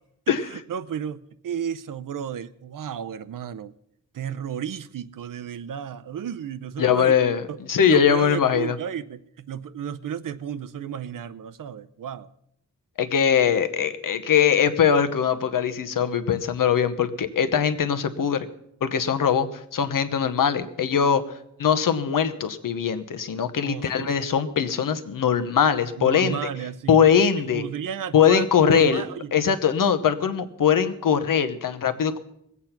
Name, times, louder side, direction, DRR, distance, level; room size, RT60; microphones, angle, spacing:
voice 1, 0.3-3.7 4.1-7.1 7.5-7.6 7.9-12.3 23.6-24.3 26.0-27.0 27.5-29.3, right 8 dB, 85° right, 0.7 m, -33 dB
voice 2, 6.8-8.8 13.0-18.5 18.8-21.2 21.6-26.4 26.9-27.6 28.1-29.0 29.3-32.2, left 7 dB, 85° left, 1.0 m, -21 dB
20.5 x 8.4 x 5.8 m
wide cardioid pair, 180°, 32 cm